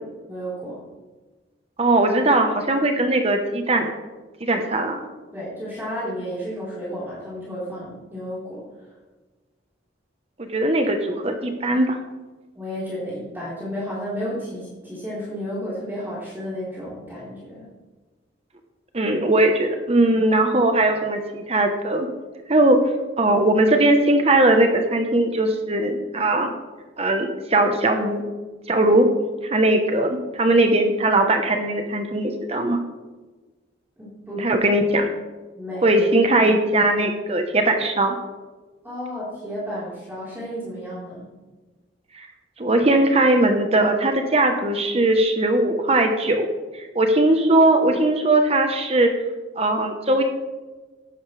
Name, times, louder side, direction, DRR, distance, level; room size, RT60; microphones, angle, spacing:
voice 1, 0.3-0.8 5.3-8.9 12.5-17.7 34.0-34.5 35.5-36.1 38.8-41.3, equal, 10° right, -9 dB, 4.1 m, -32 dB
voice 2, 1.8-3.9 4.4-5.0 10.5-12.0 18.9-22.1 22.5-22.8 23.2-26.5 27.0-28.2 28.7-29.1 29.5-32.8 34.4-35.1 35.8-38.2 42.1-42.3 42.6-46.5 46.7-49.1 49.6-50.2, right 2 dB, 35° right, 5 dB, 1.1 m, -19 dB
13.5 x 11.0 x 3.4 m, 1.2 s
head